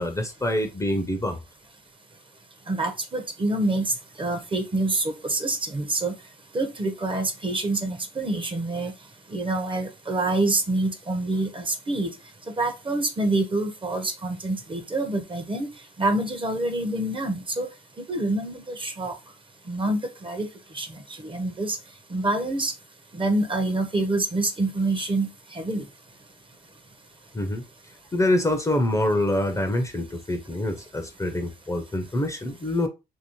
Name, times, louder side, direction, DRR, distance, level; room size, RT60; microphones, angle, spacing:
voice 1, 0.0-1.4 27.3-27.6 28.1-32.9, left 1 dB, 15° left, 5 dB, 0.5 m, -25 dB
voice 2, 2.7-6.1 6.5-8.9 9.3-12.1 12.6-15.7 16.0-17.7 18.1-19.1 19.7-20.5 20.7-21.8 22.1-22.7 23.1-25.8, right 2 dB, 25° right, 7 dB, 0.7 m, -26 dB
3.0 x 2.7 x 2.9 m, 0.26 s
cardioid pair, 90°, 20 cm